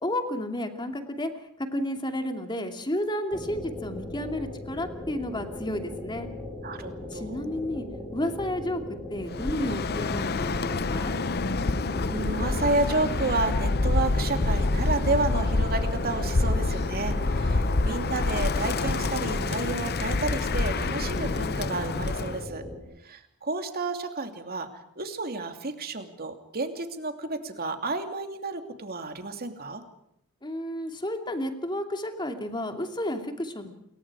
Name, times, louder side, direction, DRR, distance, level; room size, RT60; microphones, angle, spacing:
voice 1, 0.0-1.3 1.6-6.3 7.1-7.9 8.1-8.8 9.1-11.1 30.4-33.8, left 1 dB, 20° left, 5 dB, 2.7 m, -31 dB
sound 1, 3.3-22.8, left 1 dB, ahead, 6.3 m, -38 dB
voice 2, 6.6-7.4 12.1-22.6 23.0-24.7 25.0-29.8, right 3 dB, 45° right, 6 dB, 2.7 m, -31 dB
Bird, 9.3-22.4, left 3 dB, 45° left, 0.8 m, -27 dB
28.5 x 23.0 x 4.9 m, 0.76 s
head